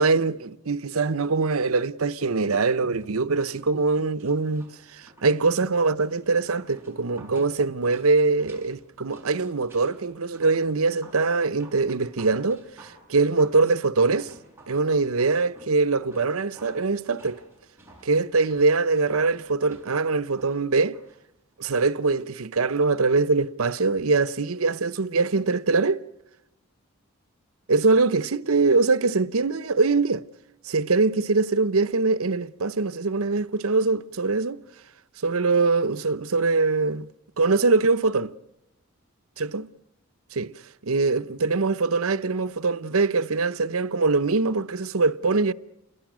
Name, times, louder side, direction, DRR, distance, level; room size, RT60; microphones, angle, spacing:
voice 1, 0.0-14.3 14.7-17.4 18.0-21.0 21.6-26.0 27.7-30.2 30.6-34.6 35.2-37.1 37.4-38.3 39.4-39.7 40.3-40.5 40.8-45.5, right 3 dB, 90° right, 0.8 m, -23 dB
sound 1, 2.4-21.2 21.5-21.6, right 1 dB, 10° right, 6.2 m, -52 dB
28.5 x 22.5 x 6.2 m
head